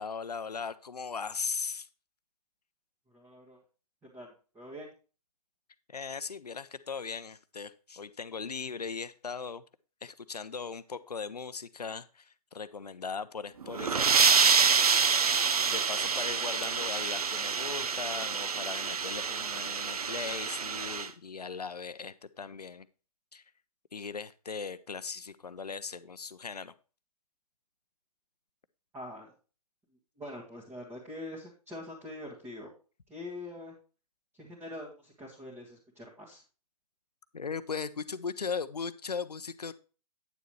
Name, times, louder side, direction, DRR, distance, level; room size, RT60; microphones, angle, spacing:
voice 1, 0.0-1.9 5.9-9.6 10.0-14.5 15.7-22.9 23.3-23.4 23.9-26.7 37.3-39.7, left 5 dB, 80° left, 15 dB, 0.6 m, -38 dB
voice 2, 3.1-3.6 4.1-4.9 28.9-29.3 30.2-32.7 33.1-33.7 34.4-36.4, left 1 dB, 10° right, -5 dB, 1.7 m, -44 dB
sound 1, 13.6-21.1, right 6 dB, 70° right, 0.7 m, -27 dB
9.0 x 6.8 x 3.1 m, 0.36 s
figure-of-eight pair, 130°, 20 cm